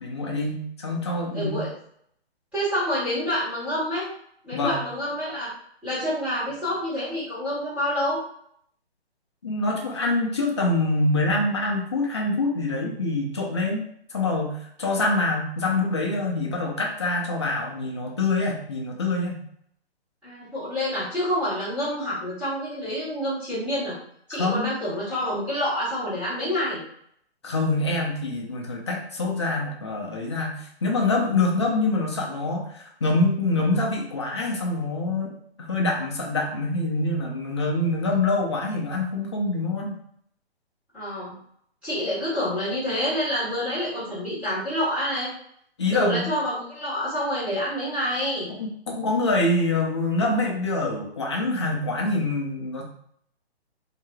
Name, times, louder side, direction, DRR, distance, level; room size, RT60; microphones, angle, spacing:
voice 1, 0.0-1.6 4.5-4.8 9.4-13.8 14.1-19.4 24.3-24.7 27.4-35.3 35.6-40.0 45.8-46.3 48.5-52.8, left 2 dB, 25° left, -1 dB, 0.5 m, -25 dB
voice 2, 1.3-1.7 2.5-4.1 4.4-5.5 5.8-8.2 20.2-23.9 24.3-26.8 40.9-41.4 41.8-45.3 45.9-48.5, equal, 5° right, -14 dB, 1.3 m, -27 dB
3.1 x 2.8 x 2.2 m, 0.67 s
hypercardioid pair, 155°, 32 cm